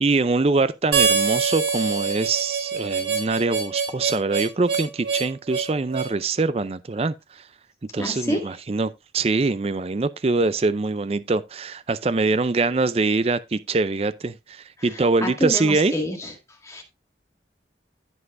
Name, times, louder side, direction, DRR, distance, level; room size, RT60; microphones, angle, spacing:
voice 1, 0.0-7.4 7.9-15.9, right 3 dB, 35° right, 0.4 m, -23 dB
Harmonica, 0.9-6.1, right 5 dB, 85° right, 3.5 m, -24 dB
voice 2, 8.0-8.4 14.9-16.3 16.6-16.8, equal, 15° left, 1.9 m, -28 dB
15.5 x 5.5 x 2.5 m
head